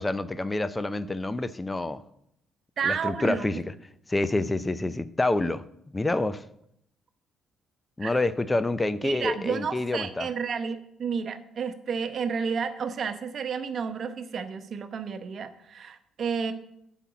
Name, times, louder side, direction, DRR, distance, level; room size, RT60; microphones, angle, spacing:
voice 1, 0.0-2.0 2.8-3.6 4.1-5.6 5.9-6.4 8.0-10.3, left 2 dB, 20° left, 0.6 m, -27 dB
voice 2, 2.8-3.5 8.0-8.1 9.0-16.5, right 6 dB, 55° right, 1.0 m, -31 dB
8.2 x 6.0 x 7.0 m
hypercardioid pair, 55°, 0 cm